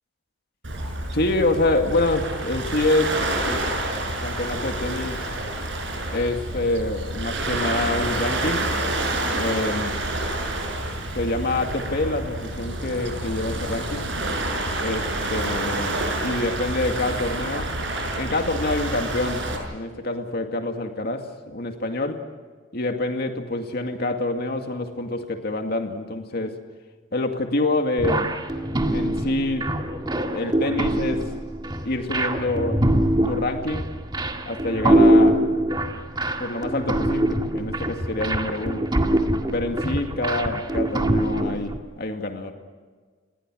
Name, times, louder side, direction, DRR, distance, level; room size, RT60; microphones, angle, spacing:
Waves surf, 0.6-19.6, right 2 dB, 75° right, 6.4 m, -28 dB
voice 1, 1.1-3.1 3.4-3.6 4.2-5.3 6.1-8.7 9.3-10.0 11.1-14.1 14.8-17.7 18.1-22.2 22.7-26.5 27.1-28.3 28.9-29.7 30.3-31.3 31.8-32.8 33.2-33.9 34.4-35.4 36.4-38.8 39.5-42.5, left 2 dB, 55° left, 4 dB, 2.2 m, -26 dB
sound 1, 28.0-41.8, right 1 dB, 25° right, 1.9 m, -23 dB
29.0 x 21.0 x 6.3 m, 1.5 s
head